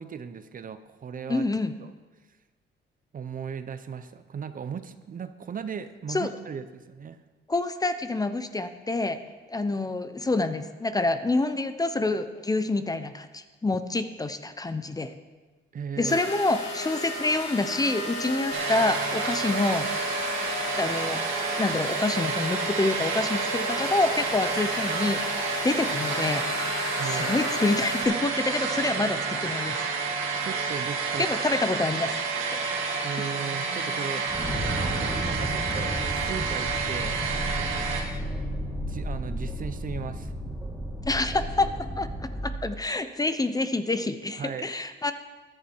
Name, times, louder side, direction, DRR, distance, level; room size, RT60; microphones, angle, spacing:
voice 1, 0.0-1.5 1.8-1.9 3.1-7.2 15.7-16.2 27.0-27.4 30.4-31.3 33.0-34.5 34.8-37.2 37.5-37.9 38.9-40.3 44.4-44.7, right 6 dB, 45° right, 11 dB, 0.8 m, -37 dB
voice 2, 1.3-1.7 6.1-6.3 7.5-9.2 9.5-15.1 16.0-19.9 20.8-21.2 21.6-25.2 25.6-26.4 27.0-30.1 31.2-32.2 33.2-33.3 41.0-41.7 42.0-42.1 42.4-45.1, left 2 dB, 20° left, 11 dB, 0.7 m, -27 dB
sound 1, 16.0-28.0, left 1 dB, 35° left, 4.8 m, -34 dB
sound 2, 18.5-38.0, right 4 dB, 90° right, 1.9 m, -30 dB
sound 3, 34.3-42.6, equal, ahead, 2.0 m, -33 dB
14.0 x 10.0 x 4.6 m, 1.3 s
cardioid pair, 90°, 20 cm